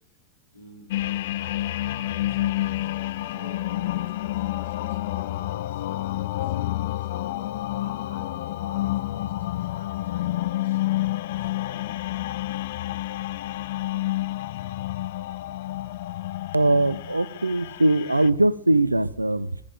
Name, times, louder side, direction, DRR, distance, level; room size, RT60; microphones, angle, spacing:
voice 1, 0.5-12.4, left 1 dB, 85° left, -3 dB, 7.2 m, -49 dB
sound 1, 0.9-18.3, left 15 dB, 55° left, 0.5 m, -29 dB
voice 2, 16.5-19.6, right 2 dB, 85° right, 18 dB, 0.6 m, -21 dB
17.0 x 14.5 x 3.7 m, 0.69 s
figure-of-eight pair, 90°, 0 cm